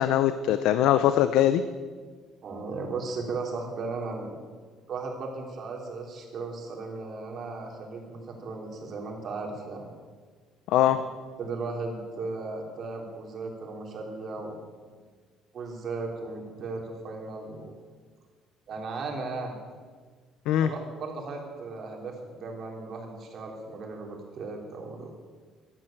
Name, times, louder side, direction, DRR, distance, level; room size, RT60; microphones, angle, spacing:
voice 1, 0.0-1.6 10.7-11.0 20.5-20.7, left 11 dB, 75° left, 11 dB, 0.7 m, -22 dB
voice 2, 2.4-4.4 4.9-9.9 10.9-11.0 11.4-14.9 15.5-17.7 18.7-19.6 20.6-25.1, right 3 dB, 40° right, 1 dB, 3.5 m, -36 dB
12.5 x 12.5 x 9.0 m, 1.5 s
cardioid pair, 155°, 0 cm